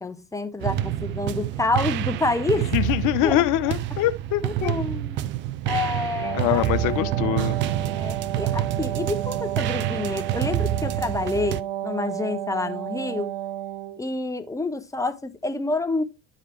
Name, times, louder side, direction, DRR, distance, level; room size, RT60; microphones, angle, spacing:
voice 1, 0.0-2.7 3.2-3.4 4.4-5.2 5.6-6.6 7.9-13.3 14.0-16.0, left 2 dB, 10° left, 0.7 m, -28 dB
sound 1, 0.6-11.6, right 12 dB, 30° right, 0.3 m, -28 dB
voice 2, 2.6-4.7 6.3-7.6, left 14 dB, 45° left, 0.8 m, -24 dB
Wind instrument woodwind instrument, 6.1-14.1, right 12 dB, 50° right, 0.8 m, -32 dB
11.5 x 4.9 x 3.1 m
figure-of-eight pair, 65°, 43 cm